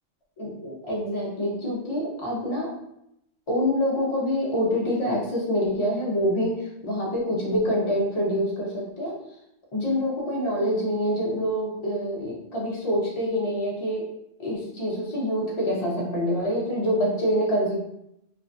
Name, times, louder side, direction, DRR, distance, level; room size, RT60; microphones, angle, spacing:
voice 1, 0.4-2.7 3.5-9.1 9.7-14.1 14.4-17.8, equal, 30° left, -5 dB, 0.7 m, -26 dB
3.2 x 2.2 x 2.6 m, 0.81 s
omnidirectional pair, 1.3 m